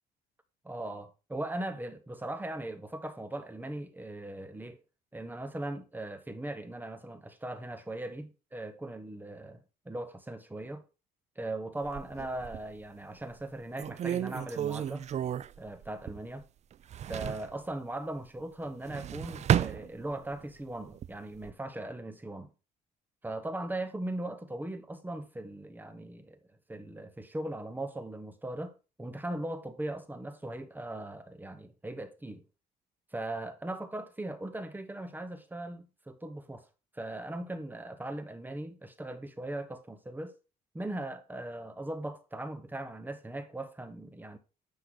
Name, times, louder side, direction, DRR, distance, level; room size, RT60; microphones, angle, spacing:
voice 1, 0.6-4.8 5.1-10.8 11.4-15.1 15.6-16.5 17.1-22.5 23.2-26.4 26.7-32.4 33.1-36.7 36.9-40.4 40.7-44.4, right 1 dB, 10° right, 1.1 m, -39 dB
sound 1, 11.8-12.8 13.3-13.4 13.8-16.4 16.7-17.5 18.7-20.4 20.9-21.5, right 10 dB, 40° right, 0.5 m, -33 dB
10.0 x 3.8 x 6.4 m
cardioid pair, 110°, 17 cm